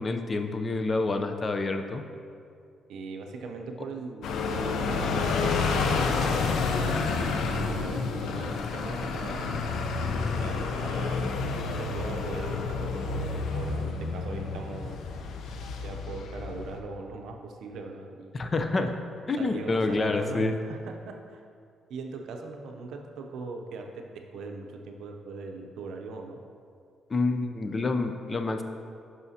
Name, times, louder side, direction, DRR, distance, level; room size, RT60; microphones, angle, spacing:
voice 1, 0.0-2.0 18.3-19.0 19.3-20.5 27.1-28.6, left 3 dB, 35° left, 6 dB, 0.6 m, -28 dB
voice 2, 2.9-9.6 10.2-11.3 11.7-15.0 15.8-18.3 19.4-21.4 21.9-26.4, right 3 dB, 75° right, 3 dB, 0.6 m, -40 dB
sound 1, 4.2-16.8, left 4 dB, 75° left, 0.6 m, -29 dB
10.5 x 5.6 x 2.8 m, 2.4 s
cardioid pair, 90°, 0 cm